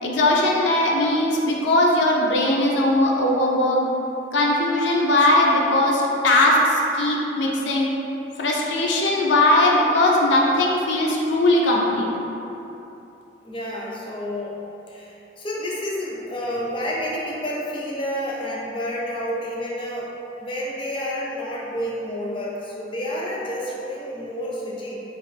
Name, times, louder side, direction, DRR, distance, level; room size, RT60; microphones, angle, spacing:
voice 1, 0.0-3.9 4.3-7.9 8.4-12.1, left 1 dB, 90° left, -2 dB, 0.4 m, -19 dB
voice 2, 13.4-14.6 14.9-20.1 20.4-25.0, equal, 30° left, -5 dB, 0.4 m, -29 dB
3.1 x 2.4 x 3.3 m, 3.0 s
head